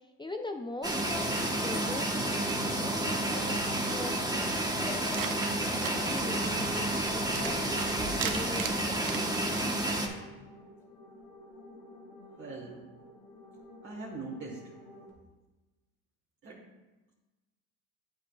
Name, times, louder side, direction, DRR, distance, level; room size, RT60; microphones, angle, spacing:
voice 1, 0.2-2.4 2.6-4.2 4.8-9.2, left 2 dB, 10° left, 5 dB, 0.5 m, -41 dB
sound 1, 0.8-10.1, right 1 dB, 10° right, 1.1 m, -30 dB
sound 2, 5.0-9.7, right 7 dB, 55° right, 0.8 m, -39 dB
sound 3, 5.8-15.1, left 1 dB, 65° left, 2.4 m, -52 dB
voice 2, 12.3-12.9 13.8-14.7 16.4-16.6, right 3 dB, 30° right, -3 dB, 1.4 m, -42 dB
8.4 x 7.4 x 2.4 m, 1.1 s
supercardioid pair, 80°, 39 cm